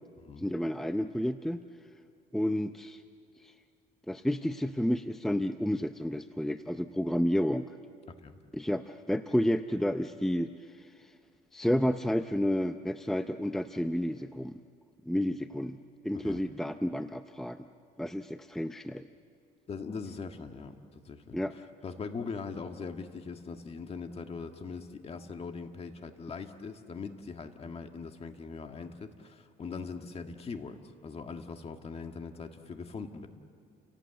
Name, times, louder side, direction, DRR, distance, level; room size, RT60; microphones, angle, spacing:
voice 1, 0.4-1.6 2.3-3.0 3.4-3.5 4.1-7.7 8.5-10.9 11.5-14.6 15.1-15.8 16.0-17.7 18.0-19.1 21.3-21.5, equal, ahead, 9 dB, 0.6 m, -31 dB
voice 2, 19.7-33.3, left 4 dB, 35° left, 6 dB, 1.8 m, -41 dB
30.0 x 18.0 x 8.1 m, 2.3 s
cardioid pair, 110°, 17 cm